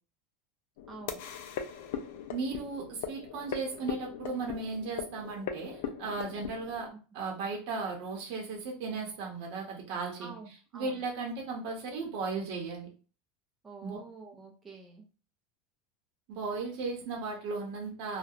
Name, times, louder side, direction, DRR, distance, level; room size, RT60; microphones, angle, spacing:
sound 1, 0.8-6.9, left 8 dB, 65° left, 0.3 m, -40 dB
voice 1, 0.9-1.2 10.2-11.0 13.6-15.0, right 3 dB, 10° right, -1 dB, 0.4 m, -47 dB
voice 2, 2.3-6.9 7.1-10.3 10.7-12.9 13.8-14.0 16.3-18.2, right 4 dB, 50° right, 0 dB, 0.7 m, -36 dB
2.7 x 2.1 x 2.3 m, 0.36 s
supercardioid pair, 175°, 0 cm